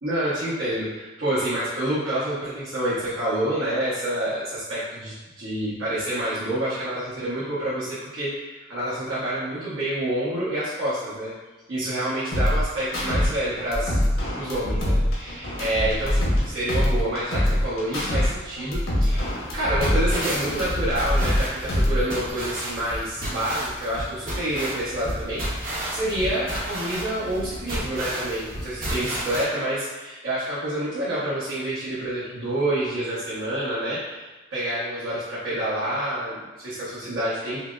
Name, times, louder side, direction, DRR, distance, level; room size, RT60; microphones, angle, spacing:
voice 1, 0.0-11.3 11.7-14.0 14.3-37.6, right 1 dB, 75° right, -12 dB, 1.1 m, -28 dB
sound 1, 12.3-13.3 13.6-16.4 16.7-18.3 18.6-21.4 21.7-22.3, left 1 dB, 90° left, 1.1 m, -23 dB
sound 2, 19.0-29.4, right 1 dB, 45° right, 0.9 m, -32 dB
5.6 x 2.1 x 2.4 m, 1.2 s
head